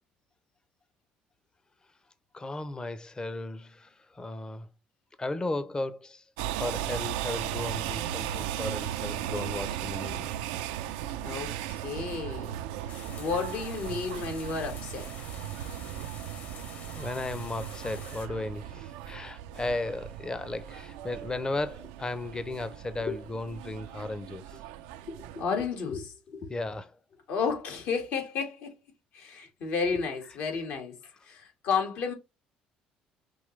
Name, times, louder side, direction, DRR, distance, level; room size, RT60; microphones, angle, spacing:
voice 1, 2.3-4.7 5.2-6.2 6.6-10.3 16.9-24.6 26.5-27.0, left 2 dB, 25° left, 0.7 m, -35 dB
sound 1, 6.4-25.4, right 12 dB, 90° right, 0.4 m, -37 dB
voice 2, 11.2-12.5 12.8-15.1 23.1-23.2 25.1-26.5 27.3-28.7 29.1-32.1, left 5 dB, 70° left, 2.1 m, -32 dB
sound 2, 12.9-18.3, left 5 dB, 55° left, 1.8 m, -48 dB
5.3 x 3.0 x 3.2 m
supercardioid pair, 75°, 4 cm